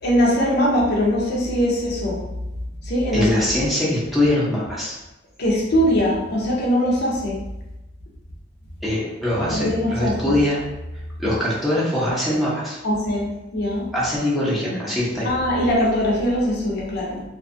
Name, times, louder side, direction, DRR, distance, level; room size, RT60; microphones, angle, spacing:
voice 1, 0.0-2.2 2.8-3.3 5.4-7.4 9.5-10.3 12.8-13.9 15.2-17.2, equal, 60° left, -3 dB, 0.6 m, -21 dB
voice 2, 3.1-5.0 8.8-10.6 11.2-12.8 13.9-15.3, left 1 dB, ahead, -8 dB, 0.7 m, -22 dB
2.5 x 2.3 x 2.5 m, 0.98 s
head